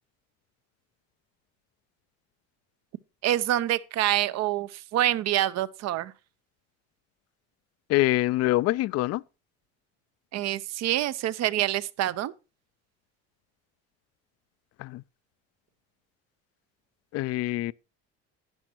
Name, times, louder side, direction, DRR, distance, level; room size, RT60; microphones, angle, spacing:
voice 1, 3.2-6.1 10.3-12.3, right 13 dB, 60° right, 0.8 m, -26 dB
voice 2, 7.9-9.2 14.8-15.0 17.1-17.7, left 17 dB, 55° left, 0.5 m, -25 dB
12.0 x 9.4 x 2.9 m
cardioid pair, 110°, 30 cm